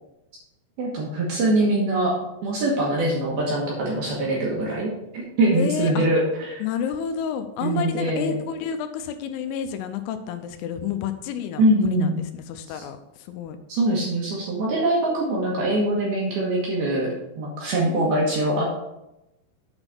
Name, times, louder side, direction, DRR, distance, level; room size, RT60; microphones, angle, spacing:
voice 1, 0.8-2.2 2.4-6.6 7.6-8.3 11.6-12.2 13.7-18.8, right 1 dB, 65° right, -3 dB, 2.6 m, -23 dB
voice 2, 5.5-6.1 6.6-13.6 17.9-18.4, left 7 dB, 85° left, 8 dB, 3.1 m, -30 dB
8.8 x 4.1 x 5.9 m, 0.89 s
omnidirectional pair, 5.9 m